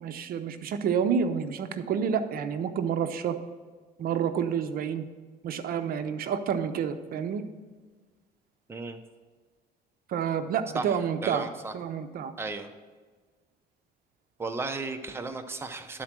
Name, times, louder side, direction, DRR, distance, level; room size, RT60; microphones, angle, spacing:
voice 1, 0.0-3.4 4.0-5.0 5.4-7.4 10.1-11.5 11.7-12.3, right 7 dB, 60° right, 9 dB, 0.6 m, -29 dB
voice 2, 10.7-11.7 12.4-12.7 14.4-16.0, right 3 dB, 15° right, 7 dB, 0.6 m, -35 dB
11.5 x 4.3 x 6.0 m, 1.4 s
cardioid pair, 110°, 17 cm